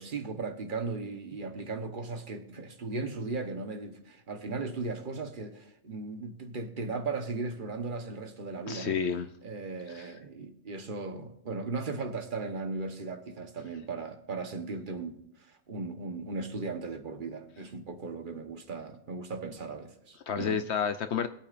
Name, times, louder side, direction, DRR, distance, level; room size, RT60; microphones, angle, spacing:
voice 1, 0.0-9.0 9.4-20.6, right 3 dB, 40° right, 1.2 m, -37 dB
voice 2, 8.7-9.3 9.9-10.1 20.3-21.3, left 7 dB, 65° left, 0.8 m, -30 dB
22.5 x 8.5 x 2.5 m
omnidirectional pair, 1.4 m